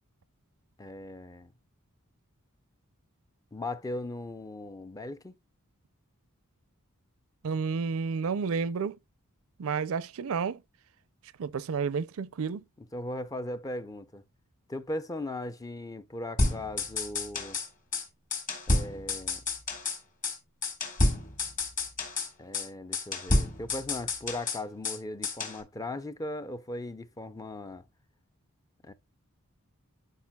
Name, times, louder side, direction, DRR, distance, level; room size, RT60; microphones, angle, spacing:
voice 1, 0.8-1.5 3.5-5.3 12.9-14.2 14.7-17.6 18.7-19.4 22.4-27.8 28.8-28.9, left 1 dB, 15° left, 0.4 m, -38 dB
voice 2, 7.4-9.0 9.6-10.6 11.4-12.6, right 5 dB, 65° right, 0.4 m, -31 dB
sound 1, 16.4-17.7 17.9-18.0 18.3-20.0 20.2-20.4 20.6-22.3 22.5-22.7 22.9-25.0 25.2-25.6, left 2 dB, 35° left, 1.9 m, -29 dB
11.5 x 4.6 x 2.2 m
head